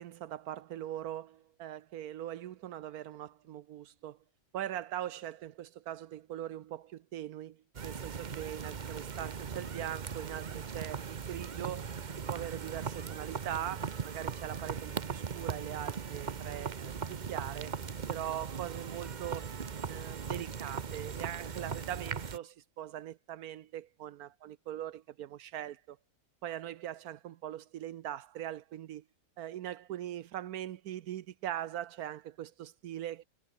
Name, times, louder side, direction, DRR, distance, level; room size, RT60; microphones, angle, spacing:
voice 1, 0.0-4.2 4.5-16.9 17.3-17.7 18.1-26.0 26.4-29.0 29.4-33.2, right 11 dB, 80° right, 1.2 m, -41 dB
sound 1, 7.7-22.4, right 6 dB, 35° right, 0.8 m, -39 dB
omnidirectional pair, 1.6 m